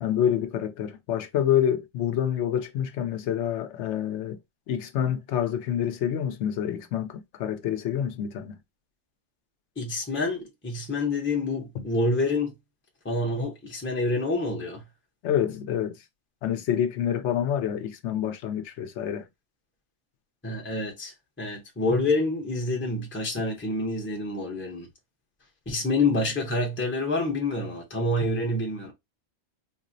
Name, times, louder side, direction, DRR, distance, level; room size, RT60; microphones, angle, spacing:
voice 1, 0.0-4.4 4.7-8.6 15.2-16.0 16.4-19.3, left 9 dB, 70° left, 0.9 m, -27 dB
voice 2, 9.8-12.5 13.0-14.8 20.4-24.9 25.7-28.9, left 2 dB, 15° left, 0.6 m, -27 dB
4.1 x 2.0 x 2.6 m
omnidirectional pair, 1.3 m